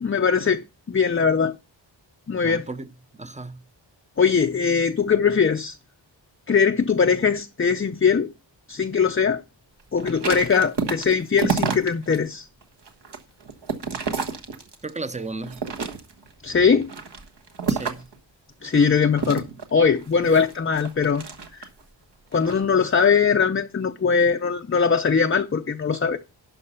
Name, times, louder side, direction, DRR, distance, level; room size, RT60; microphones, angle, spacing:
voice 1, 0.0-1.6 2.3-2.7 4.2-5.8 6.5-8.3 8.7-9.4 9.9-12.5 16.4-16.9 18.6-19.4 19.7-21.2 21.5-21.7 22.3-26.2, left 6 dB, 30° left, 0.5 m, -21 dB
voice 2, 2.4-2.9 3.2-3.6 14.8-15.6 17.7-18.1, right 3 dB, 15° right, 0.7 m, -34 dB
sound 1, 10.0-12.2 12.6-15.0 15.4-16.3 16.8-18.2 19.1-21.8 22.3-22.6, right 5 dB, 60° right, 1.4 m, -29 dB
11.5 x 5.5 x 5.6 m
wide cardioid pair, 105°, 46 cm